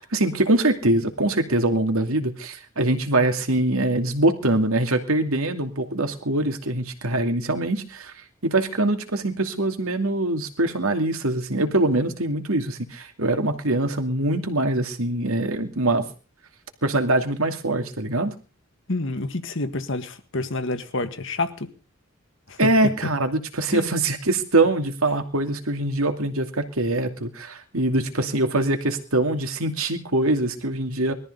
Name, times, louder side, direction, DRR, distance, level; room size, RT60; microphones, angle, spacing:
voice 1, 0.0-16.0 16.8-18.3 22.6-31.1, right 2 dB, 75° right, 5 dB, 2.6 m, -23 dB
voice 2, 18.9-21.7 22.5-22.7 23.7-23.9, left 2 dB, 60° left, 9 dB, 1.7 m, -28 dB
21.0 x 14.0 x 4.0 m, 0.36 s
head